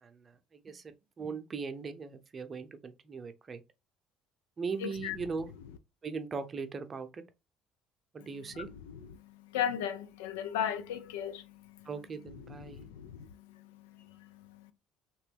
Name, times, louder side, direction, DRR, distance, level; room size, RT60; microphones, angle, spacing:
voice 1, 0.0-3.6 4.6-5.5 6.0-7.2 8.1-8.7 11.9-12.9, right 4 dB, 35° right, 0.6 m, -39 dB
voice 2, 4.8-5.2 8.5-9.2 9.5-11.9 12.5-14.7, left 9 dB, 80° left, 0.4 m, -37 dB
3.0 x 2.9 x 3.3 m
hypercardioid pair, 60°, 0 cm